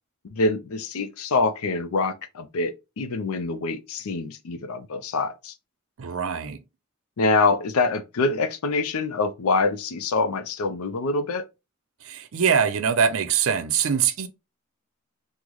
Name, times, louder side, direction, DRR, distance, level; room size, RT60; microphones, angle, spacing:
voice 1, 0.2-5.5 7.2-11.4, left 3 dB, 80° left, 0.5 m, -25 dB
voice 2, 6.0-6.6 12.0-14.3, right 7 dB, 70° right, 0.5 m, -23 dB
3.8 x 2.1 x 3.0 m
head